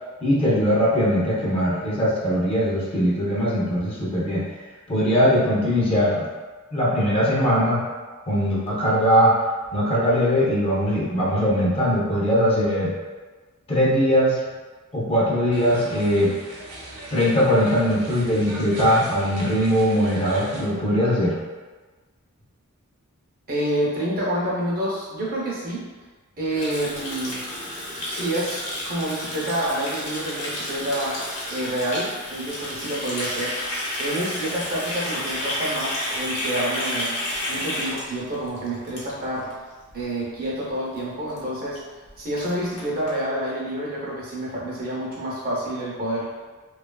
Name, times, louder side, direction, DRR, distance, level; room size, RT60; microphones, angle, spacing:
voice 1, 0.2-4.4 4.9-6.3 6.7-7.8 8.3-9.3 9.7-12.9 13.7-14.4 14.9-16.3 17.1-21.4, equal, 25° left, -6 dB, 0.5 m, -20 dB
sound 1, 15.5-20.7, right 1 dB, 85° right, 0.6 m, -36 dB
voice 2, 23.5-25.8 26.4-27.4 28.1-31.2 31.5-33.5 34.0-37.1 37.5-39.5 39.9-41.8 42.2-46.3, right 1 dB, 40° right, -5 dB, 0.6 m, -28 dB
Water tap faucet, 26.5-39.5 39.8-40.0 40.4-40.7 41.0-41.1 41.3-41.4 41.8-41.9 42.1-43.1, left 1 dB, 85° left, 0.8 m, -31 dB
2.8 x 2.3 x 2.2 m, 1.3 s
head